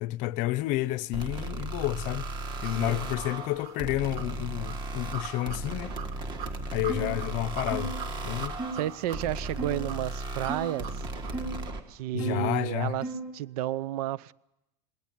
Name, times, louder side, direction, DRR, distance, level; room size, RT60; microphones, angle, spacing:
voice 1, 0.0-2.3 2.6-5.9 6.7-7.9 8.2-8.5 12.1-12.9, left 16 dB, 40° left, 0.7 m, -30 dB
sound 1, 1.1-11.8, right 2 dB, 20° right, 1.9 m, -36 dB
sound 2, 1.4-11.5, right 7 dB, 55° right, 3.1 m, -44 dB
voice 2, 2.7-3.0 8.7-11.0 11.9-14.3, right 14 dB, 70° right, 0.8 m, -32 dB
sound 3, 6.9-7.2 7.7-8.0 8.6-8.8 9.6-9.9 10.5-10.7 11.3-11.6 12.2-12.5 13.0-13.3, right 3 dB, 5° right, 2.5 m, -35 dB
20.5 x 19.0 x 9.1 m
supercardioid pair, 170°, 20 cm